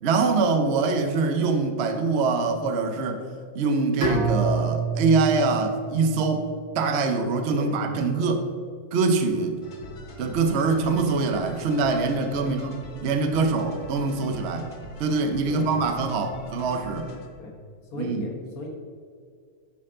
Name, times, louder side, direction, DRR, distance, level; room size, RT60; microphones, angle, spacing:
voice 1, 0.0-3.2 3.5-6.5 6.7-8.5 8.9-9.6 10.2-14.7 15.0-17.1 18.0-18.3, right 4 dB, 70° right, 6 dB, 0.6 m, -24 dB
Bowed string instrument, 4.0-7.0, right 4 dB, 40° right, 2.2 m, -28 dB
voice 2, 7.5-8.2 12.4-12.5 15.5-15.7 17.3-17.6 17.9-18.8, left 2 dB, 55° left, 1 dB, 1.6 m, -36 dB
sound 1, 9.6-17.5, left 1 dB, 70° left, 0.4 m, -43 dB
11.5 x 4.5 x 3.7 m, 2.1 s
omnidirectional pair, 2.0 m